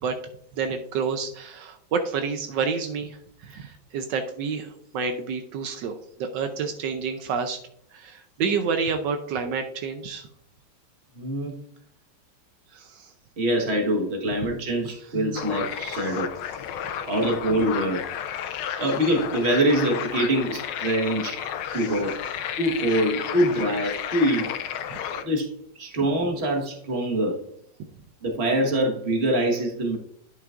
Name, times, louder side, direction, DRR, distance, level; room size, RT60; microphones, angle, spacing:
voice 1, 0.6-7.6 7.9-10.3 12.7-13.1 15.9-16.2 21.7-21.9, right 5 dB, 80° right, 6 dB, 1.3 m, -29 dB
voice 2, 11.2-11.5 13.4-16.3 17.0-18.0 18.8-21.4 21.7-22.2 22.6-24.5 25.1-27.4 28.2-30.0, right 1 dB, 35° right, 0 dB, 1.6 m, -24 dB
sound 1, 15.4-25.2, left 9 dB, 85° left, 1.3 m, -32 dB
10.5 x 6.2 x 2.5 m, 0.66 s
omnidirectional pair, 1.9 m